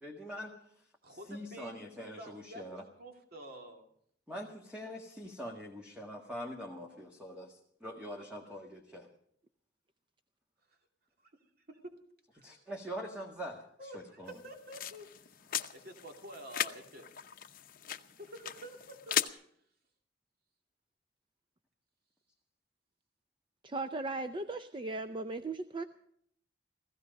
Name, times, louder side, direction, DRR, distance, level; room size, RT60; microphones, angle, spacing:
voice 1, 0.0-2.8 4.3-9.1 12.4-14.4, equal, 5° right, 0 dB, 1.7 m, -44 dB
voice 2, 1.0-3.9 11.7-11.8 12.3-12.5 13.8-15.3 15.7-17.1 18.2-19.2, equal, 55° right, 3 dB, 2.5 m, -49 dB
sound 1, 14.3-19.3, left 10 dB, 50° left, 0.8 m, -38 dB
voice 3, 23.6-25.8, right 2 dB, 25° right, 9 dB, 0.6 m, -37 dB
16.0 x 16.0 x 5.2 m, 0.66 s
head